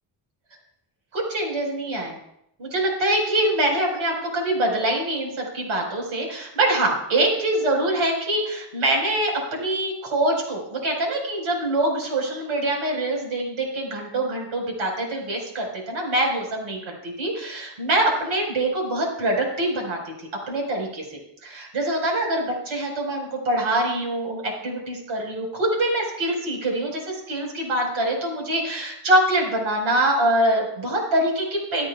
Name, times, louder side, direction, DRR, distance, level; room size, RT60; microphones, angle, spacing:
voice 1, 1.1-2.2 2.6-31.9, right 1 dB, 90° right, 0 dB, 5.0 m, -24 dB
25.0 x 8.8 x 2.4 m, 0.78 s
cardioid pair, 110°, 46 cm